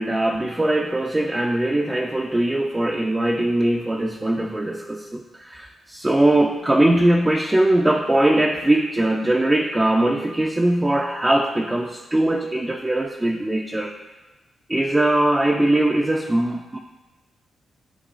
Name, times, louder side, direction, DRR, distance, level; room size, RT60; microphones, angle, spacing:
voice 1, 0.0-13.9 14.7-16.8, right 1 dB, 15° right, 0 dB, 0.4 m, -21 dB
11.5 x 3.9 x 2.5 m, 1.1 s
cardioid pair, 105°, 0 cm